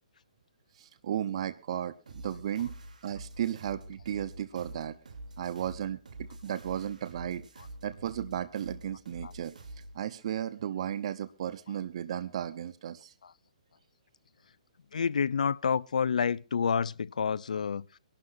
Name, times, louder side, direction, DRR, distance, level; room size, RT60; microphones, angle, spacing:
voice 1, 0.7-2.8 3.0-5.0 5.4-7.4 7.8-9.6 9.9-13.1, right 10 dB, 50° right, 0.9 m, -35 dB
sound 1, 2.1-10.0, right 1 dB, 80° right, 3.3 m, -46 dB
voice 2, 14.9-17.9, left 6 dB, 75° left, 0.7 m, -28 dB
24.0 x 12.0 x 2.7 m
hypercardioid pair, 150°, 4 cm